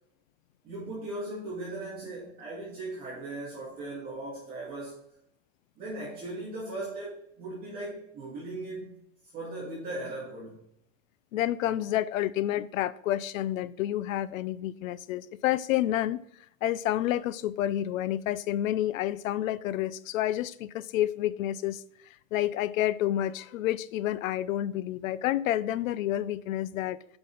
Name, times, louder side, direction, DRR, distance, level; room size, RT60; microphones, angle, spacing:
voice 1, 0.6-5.1 5.8-9.0 9.3-10.6, right 2 dB, 25° right, 2.3 m, -38 dB
voice 2, 11.3-16.2 16.6-21.8 22.3-27.2, left 13 dB, 85° left, 0.6 m, -29 dB
7.9 x 5.7 x 3.9 m
supercardioid pair, 175°, 39 cm